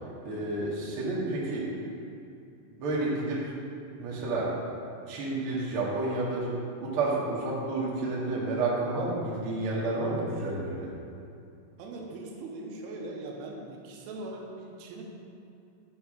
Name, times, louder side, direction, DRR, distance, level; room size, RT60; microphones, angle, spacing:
voice 1, 0.2-1.7 2.7-3.6 4.0-4.5 5.1-6.5 6.8-10.9, right 2 dB, 65° right, -6 dB, 1.3 m, -30 dB
voice 2, 11.8-15.0, right 2 dB, 90° right, 0 dB, 3.4 m, -40 dB
9.8 x 6.4 x 5.0 m, 2.6 s
omnidirectional pair, 5.7 m